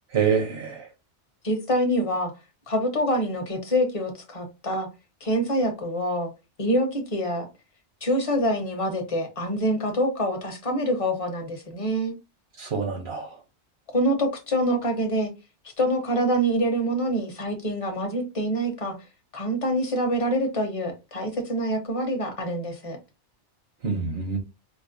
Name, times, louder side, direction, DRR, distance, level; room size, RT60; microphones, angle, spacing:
voice 1, 0.1-0.8 12.6-13.3 23.8-24.4, right 6 dB, 65° right, 1.1 m, -26 dB
voice 2, 1.4-2.3 2.7-4.9 5.2-6.3 6.6-7.4 8.0-12.1 13.9-15.3 15.8-18.9 19.3-23.0, equal, 35° left, 0.8 m, -25 dB
5.0 x 2.1 x 2.6 m
omnidirectional pair, 1.2 m